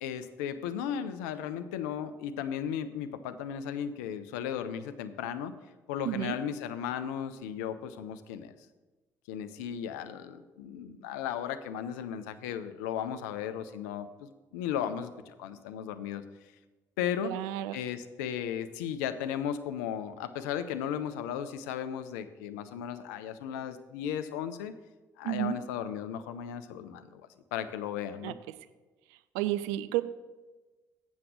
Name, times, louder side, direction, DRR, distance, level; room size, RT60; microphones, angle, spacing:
voice 1, 0.0-5.5 5.9-8.5 9.3-16.2 17.0-17.3 17.7-24.7 25.2-27.2 27.5-28.4, left 9 dB, 70° left, 11 dB, 0.6 m, -35 dB
voice 2, 17.2-17.8 25.2-25.6 28.2-28.3 29.3-30.0, right 14 dB, 70° right, 13 dB, 0.4 m, -31 dB
7.7 x 7.1 x 6.2 m, 1.2 s
figure-of-eight pair, 45°, 10 cm